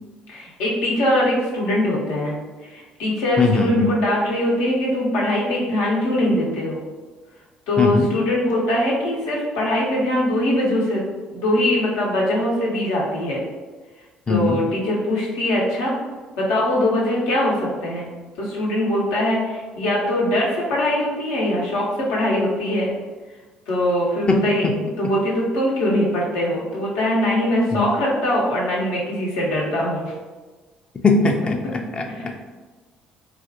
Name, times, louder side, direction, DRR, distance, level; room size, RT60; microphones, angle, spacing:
voice 1, 0.3-2.4 2.6-6.8 7.7-11.0 11.3-13.4 14.3-15.9 16.4-22.9 23.7-24.6 25.0-30.1 32.1-32.3, left 1 dB, 70° left, -4 dB, 0.8 m, -22 dB
voice 2, 3.4-3.9 7.8-8.1 14.3-14.6 24.3-24.7 27.7-27.9 31.0-32.3, left 3 dB, 30° left, 3 dB, 0.4 m, -20 dB
2.9 x 2.4 x 2.7 m, 1.3 s
hypercardioid pair, 55°, 3 cm